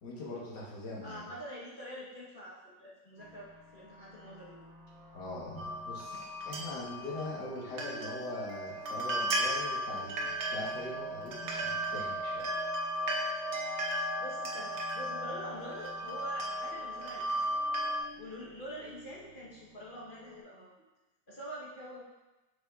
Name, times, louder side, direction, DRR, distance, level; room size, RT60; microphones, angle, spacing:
voice 1, 0.0-1.2 5.1-12.5, left 2 dB, 65° left, -4 dB, 1.9 m, -42 dB
voice 2, 1.0-4.6 14.2-17.6 18.2-20.7 21.3-22.0, equal, 35° left, -6 dB, 1.1 m, -45 dB
sound 1, 3.2-20.4, left 2 dB, 10° right, 1.4 m, -55 dB
sound 2, 5.6-18.0, right 1 dB, 50° right, 0.8 m, -35 dB
6.8 x 6.1 x 2.4 m, 1.1 s
omnidirectional pair, 2.0 m